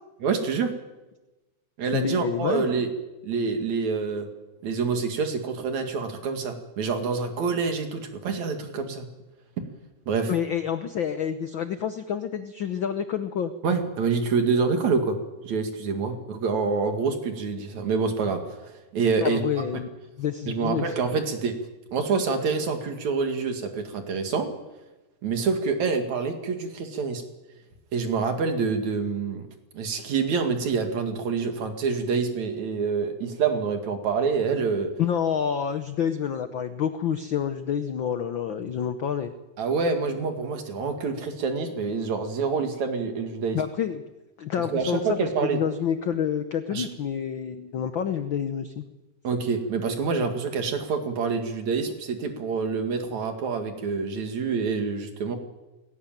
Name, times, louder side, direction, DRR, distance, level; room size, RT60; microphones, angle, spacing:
voice 1, 0.2-0.7 1.8-2.9 3.2-4.3 4.6-9.1 10.1-10.3 13.6-15.2 15.4-18.4 18.9-19.4 20.5-21.5 21.9-24.5 25.2-27.2 27.9-29.5 29.7-34.9 39.6-43.6 44.7-45.6 46.7-46.9 49.2-55.4, right 5 dB, 65° right, 5 dB, 3.5 m, -26 dB
voice 2, 1.9-2.7 10.3-13.5 19.2-19.9 20.2-20.9 35.0-39.3 43.5-44.0 44.4-48.8, left 8 dB, 85° left, 9 dB, 1.0 m, -28 dB
19.0 x 17.5 x 9.1 m, 1.1 s
omnidirectional pair, 3.6 m